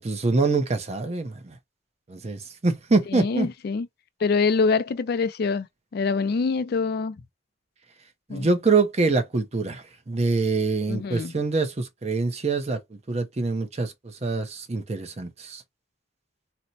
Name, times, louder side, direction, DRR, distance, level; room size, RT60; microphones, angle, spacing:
voice 1, 0.0-1.6 2.1-3.5 8.3-15.6, right 3 dB, 30° right, 0.6 m, -25 dB
voice 2, 3.1-3.9 4.2-5.7 5.9-7.2 8.3-8.5 10.9-11.3, left 4 dB, 50° left, 0.3 m, -24 dB
4.2 x 2.1 x 2.7 m
head